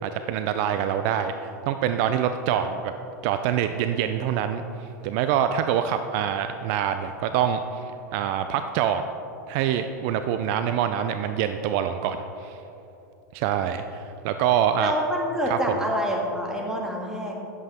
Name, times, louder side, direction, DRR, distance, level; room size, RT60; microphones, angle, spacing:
voice 1, 0.0-2.9 3.2-7.8 8.1-9.0 9.5-12.6 13.3-14.9 15.5-15.6, right 9 dB, 55° right, 9 dB, 0.4 m, -25 dB
voice 2, 14.8-17.3, equal, 5° right, -2 dB, 1.8 m, -27 dB
9.6 x 8.0 x 3.5 m, 2.8 s
hypercardioid pair, 100°, 10 cm